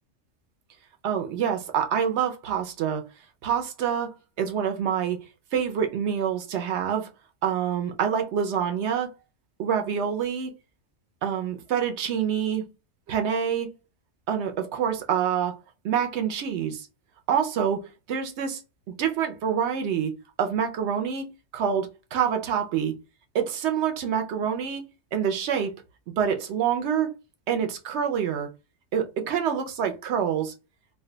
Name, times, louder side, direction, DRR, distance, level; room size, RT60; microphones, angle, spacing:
voice 1, 1.0-3.0 3.4-5.2 5.5-7.1 7.4-9.1 9.6-10.5 11.2-12.6 13.1-13.7 14.3-15.6 15.8-16.9 17.3-17.8 18.1-18.6 19.0-21.2 21.5-22.9 23.3-24.8 25.1-25.7 26.2-27.1 27.5-28.5 28.9-30.5, right 8 dB, 65° right, 0.8 m, -26 dB
2.6 x 2.2 x 3.7 m
omnidirectional pair, 1.3 m